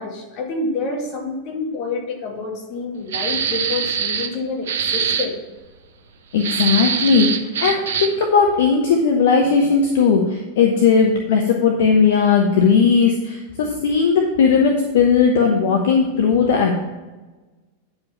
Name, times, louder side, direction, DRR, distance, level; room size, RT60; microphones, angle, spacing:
voice 1, 0.0-5.3, left 3 dB, 40° left, 0 dB, 2.2 m, -28 dB
sound 1, 3.1-4.3 4.7-5.3 6.4-8.2, right 7 dB, 60° right, 0.8 m, -23 dB
voice 2, 6.3-16.8, left 5 dB, 60° left, 2 dB, 0.9 m, -17 dB
9.4 x 5.1 x 5.5 m, 1.2 s
figure-of-eight pair, 90°, 0 cm